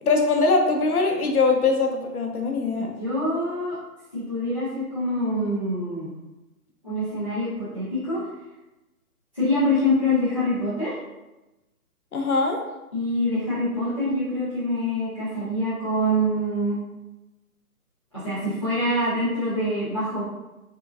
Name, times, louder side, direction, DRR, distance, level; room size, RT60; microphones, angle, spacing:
voice 1, 0.0-2.9 12.1-12.6, left 3 dB, 70° left, 3 dB, 0.8 m, -22 dB
voice 2, 2.8-3.8 4.1-6.1 6.8-8.2 9.3-10.9 12.9-16.8 18.1-20.2, left 1 dB, 20° left, -14 dB, 0.7 m, -25 dB
3.7 x 3.4 x 2.4 m, 1.0 s
hypercardioid pair, 175°, 45 cm